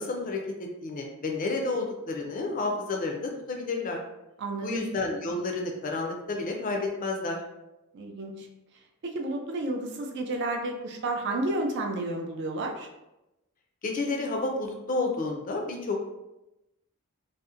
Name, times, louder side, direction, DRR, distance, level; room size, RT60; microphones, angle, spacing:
voice 1, 0.0-4.0 4.6-7.4 13.8-16.1, left 3 dB, 40° left, 1 dB, 0.4 m, -30 dB
voice 2, 4.4-4.8 7.9-8.5 9.0-12.9, right 2 dB, 55° right, 3 dB, 0.4 m, -31 dB
2.7 x 2.1 x 2.4 m, 0.94 s
head